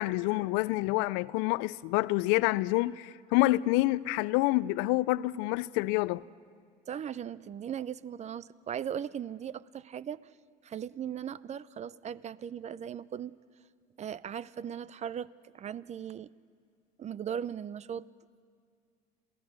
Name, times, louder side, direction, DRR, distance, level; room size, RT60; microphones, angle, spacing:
voice 1, 0.0-6.2, left 19 dB, 70° left, 0.4 m, -27 dB
voice 2, 6.9-10.2 10.6-13.3 14.0-15.3 15.5-16.3 17.0-18.0, right 9 dB, 35° right, 0.5 m, -38 dB
27.5 x 16.5 x 6.4 m
hypercardioid pair, 75°, 20 cm